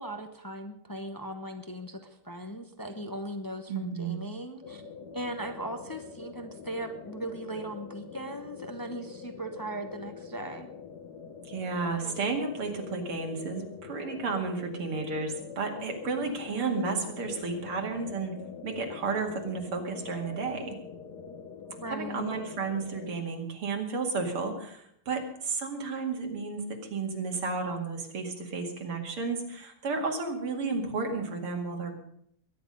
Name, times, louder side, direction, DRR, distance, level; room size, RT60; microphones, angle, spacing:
voice 1, 0.0-2.0 2.2-4.8 5.1-10.7 16.2-16.9 21.6-22.4, right 1 dB, 25° left, 6 dB, 0.4 m, -38 dB
voice 2, 3.7-4.2 11.5-20.8 21.9-31.9, right 4 dB, 85° right, 2 dB, 3.1 m, -32 dB
sound 1, 4.6-23.1, left 6 dB, 55° left, 1.7 m, -45 dB
22.0 x 10.5 x 5.4 m, 0.71 s
omnidirectional pair, 2.4 m